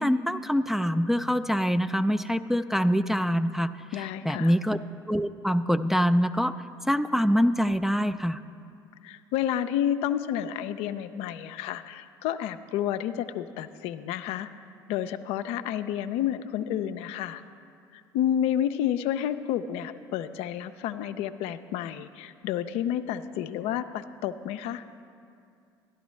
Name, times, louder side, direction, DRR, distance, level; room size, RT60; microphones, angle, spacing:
voice 1, 0.0-4.8 5.1-6.5 6.9-8.4, equal, 5° right, 10 dB, 0.3 m, -25 dB
voice 2, 3.9-4.5 9.0-14.5 14.9-17.4 17.9-24.8, left 10 dB, 65° left, 10 dB, 0.4 m, -30 dB
12.0 x 12.0 x 3.1 m, 2.4 s
hypercardioid pair, 60°, 11 cm